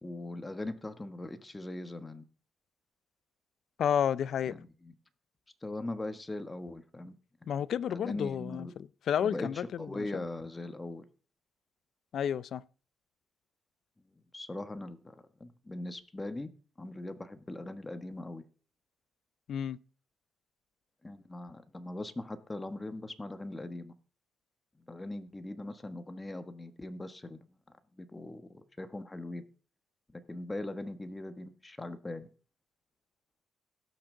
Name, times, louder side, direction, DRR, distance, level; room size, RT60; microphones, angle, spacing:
voice 1, 0.0-2.2 4.5-4.9 5.6-7.2 7.9-8.7 9.2-9.5 9.8-11.0 14.3-16.5 16.8-18.4 21.0-23.9 24.8-29.4 30.1-32.3, left 2 dB, 15° left, 1.3 m, -40 dB
voice 2, 3.8-4.6 7.5-8.7 9.1-10.2 12.1-12.6 19.5-19.8, left 9 dB, 65° left, 0.4 m, -31 dB
17.5 x 5.9 x 3.8 m
cardioid pair, 90°, 0 cm